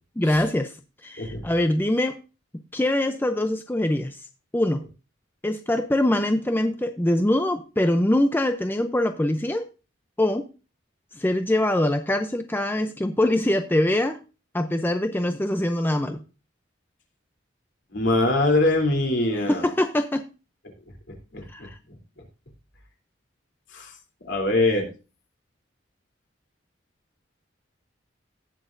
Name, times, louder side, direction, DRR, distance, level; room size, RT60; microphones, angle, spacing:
voice 1, 0.2-0.7 1.0-2.2 2.7-4.2 4.5-4.8 5.4-9.6 10.2-10.5 11.2-14.2 14.5-16.2 19.5-20.2 21.5-21.8, left 1 dB, 10° left, 7 dB, 0.5 m, -23 dB
voice 2, 17.9-19.7 21.3-21.7 23.7-23.9 24.2-24.9, left 2 dB, 65° left, 2 dB, 3.2 m, -23 dB
18.0 x 6.2 x 2.6 m, 0.32 s
head